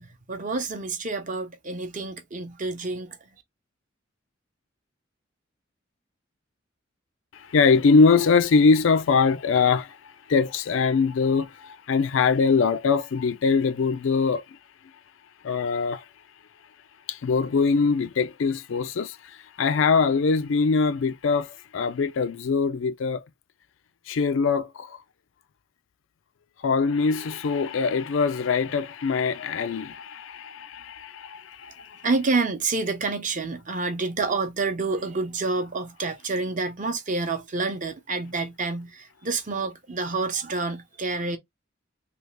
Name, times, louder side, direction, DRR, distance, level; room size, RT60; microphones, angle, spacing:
voice 1, 0.0-3.2 32.0-41.4, right 3 dB, 40° right, 0.7 m, -28 dB
voice 2, 7.3-14.4 15.4-16.0 17.1-23.3 24.1-25.0 26.6-32.1, left 5 dB, 70° left, 0.4 m, -23 dB
3.3 x 2.4 x 3.1 m
head